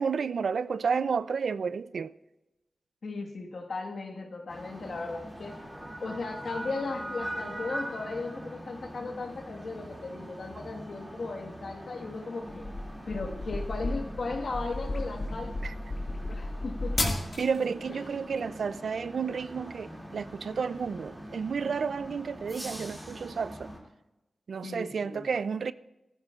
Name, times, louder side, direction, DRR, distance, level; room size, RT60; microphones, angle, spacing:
voice 1, 0.0-2.1 15.6-15.7 17.4-23.7 24.5-25.7, right 6 dB, 70° right, 0.4 m, -31 dB
voice 2, 3.0-5.6 6.0-12.7 13.1-15.8 16.3-17.0 17.9-18.0 24.6-25.3, left 3 dB, 60° left, 1.5 m, -36 dB
sound 1, 4.5-23.8, equal, 5° right, 2.4 m, -43 dB
sound 2, 12.5-17.6, left 2 dB, 35° left, 1.9 m, -33 dB
18.0 x 14.5 x 2.4 m
wide cardioid pair, 150°, 0 cm